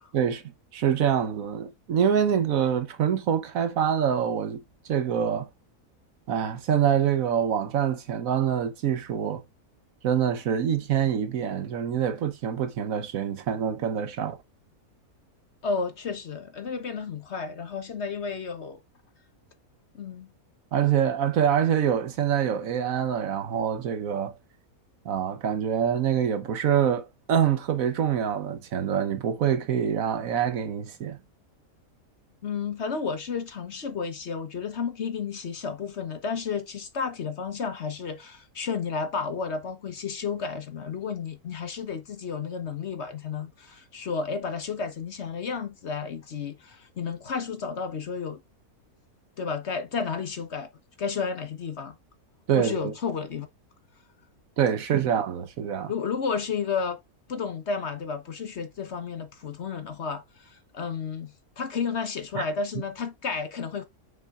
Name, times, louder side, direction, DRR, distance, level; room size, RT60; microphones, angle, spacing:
voice 1, 0.7-4.6 4.9-5.5 6.3-9.4 10.0-14.4 20.7-24.3 25.0-31.2 52.5-52.9 54.6-55.9 62.3-62.4, right 8 dB, 65° right, 1.2 m, -25 dB
voice 2, 15.6-18.8 19.9-20.3 32.4-48.4 49.4-50.7 51.0-51.9 52.5-53.5 55.9-57.0 57.3-63.9, left 5 dB, 50° left, 1.1 m, -32 dB
7.5 x 6.0 x 2.4 m
omnidirectional pair, 1.6 m